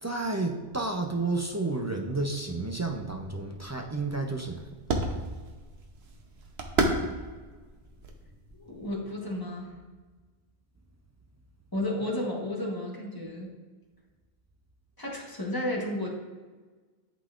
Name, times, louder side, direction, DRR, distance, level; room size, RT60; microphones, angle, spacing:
voice 1, 0.0-4.7, right 3 dB, 25° right, 2 dB, 0.3 m, -31 dB
sound 1, 2.7-9.0, right 2 dB, 80° right, 1.0 m, -34 dB
voice 2, 8.5-9.7 11.7-13.5 15.0-16.1, left 1 dB, 20° left, -2 dB, 1.2 m, -32 dB
11.5 x 3.8 x 2.4 m, 1.4 s
omnidirectional pair, 1.1 m